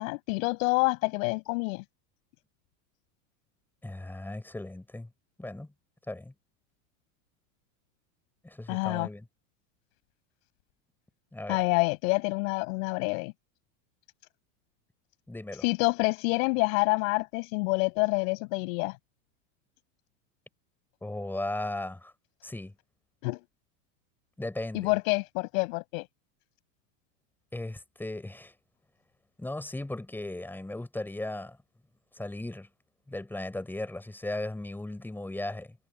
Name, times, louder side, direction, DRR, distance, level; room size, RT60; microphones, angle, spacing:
voice 1, 0.0-1.8 8.7-9.1 11.5-13.3 15.6-19.0 23.2-23.4 24.7-26.1, left 28 dB, 60° left, 6.0 m, -27 dB
voice 2, 3.8-5.1 5.4-5.7 6.1-6.3 8.4-9.2 11.3-11.6 15.3-15.6 21.0-22.1 22.4-22.7 24.4-24.9 27.5-28.5 29.4-31.6 32.2-32.7 33.1-35.8, left 1 dB, 5° left, 5.7 m, -36 dB
supercardioid pair, 155°, 46 cm